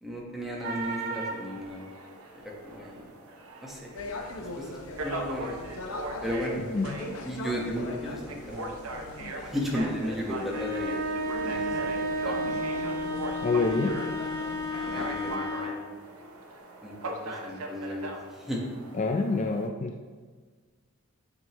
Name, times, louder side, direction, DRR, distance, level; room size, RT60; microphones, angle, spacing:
voice 1, 0.0-1.9 2.4-3.1 3.6-3.9 4.4-4.8 5.0-5.6 6.2-6.6 7.2-8.7 9.4-11.0 11.4-12.8 14.9-15.8 16.8-18.6, equal, ahead, -3 dB, 1.2 m, -35 dB
sound 1, 0.6-19.7, right 2 dB, 80° right, 0.8 m, -40 dB
sound 2, 3.9-15.4, left 2 dB, 75° left, 0.7 m, -41 dB
sound 3, 10.4-15.9, equal, 50° right, 0.9 m, -32 dB
voice 2, 13.4-14.0 18.9-19.9, left 3 dB, 35° left, 3 dB, 0.3 m, -26 dB
8.9 x 5.4 x 3.0 m, 1.5 s
head